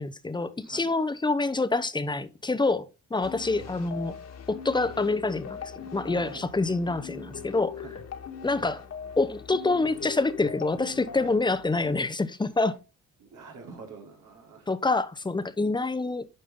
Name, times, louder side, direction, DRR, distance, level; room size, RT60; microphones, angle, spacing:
voice 1, 0.0-4.2 4.5-7.8 8.4-8.8 9.2-12.8 14.7-16.3, left 3 dB, 15° left, 0.8 m, -27 dB
voice 2, 0.6-0.9 6.0-6.5 7.8-8.0 13.2-14.7, right 4 dB, 80° right, 3.6 m, -46 dB
sound 1, 3.2-12.0, left 6 dB, 60° left, 1.8 m, -41 dB
9.5 x 5.4 x 3.7 m
cardioid pair, 90°, 30 cm